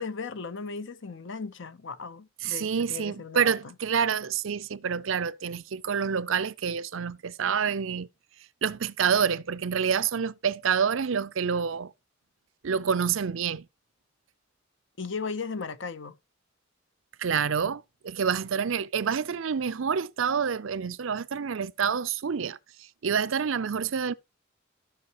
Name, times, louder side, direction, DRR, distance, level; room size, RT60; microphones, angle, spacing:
voice 1, 0.0-3.7 15.0-16.1, left 5 dB, 65° left, 0.9 m, -36 dB
voice 2, 2.4-8.1 8.6-11.9 12.6-13.7 17.2-22.6 23.0-24.1, right 7 dB, 70° right, 0.5 m, -27 dB
14.5 x 5.6 x 3.0 m
head